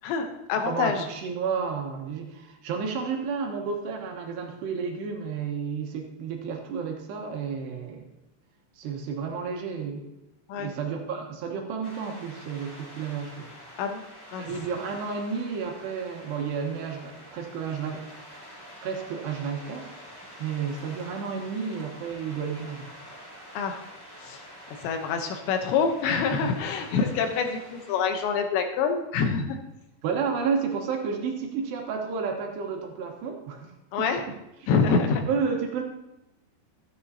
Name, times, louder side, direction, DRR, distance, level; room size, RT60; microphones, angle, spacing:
voice 1, 0.0-1.1 10.5-10.7 13.8-14.0 14.3-14.6 23.5-23.8 24.2-24.4 24.8-29.6 33.9-34.2 34.7-35.2, left 5 dB, 80° left, 5 dB, 3.2 m, -26 dB
voice 2, 0.7-8.1 8.8-10.1 10.5-13.5 14.4-18.0 18.8-22.9 30.0-33.7 34.0-34.4 34.6-34.7 35.3-35.8, right 6 dB, 75° right, 2 dB, 3.1 m, -31 dB
sound 1, 11.8-28.2, equal, 20° left, 0.6 m, -47 dB
13.5 x 9.9 x 2.8 m, 0.92 s
omnidirectional pair, 5.1 m